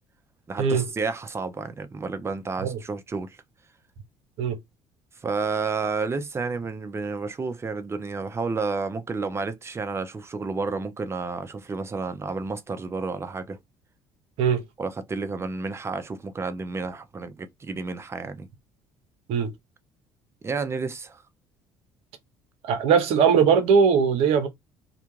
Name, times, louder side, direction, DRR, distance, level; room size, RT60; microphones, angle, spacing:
voice 1, 0.5-3.4 5.2-13.6 14.8-18.5 20.4-21.2, right 4 dB, 25° right, 0.6 m, -31 dB
voice 2, 22.6-24.5, right 6 dB, 70° right, 0.7 m, -20 dB
2.3 x 2.2 x 3.1 m
supercardioid pair, 70°, 10 cm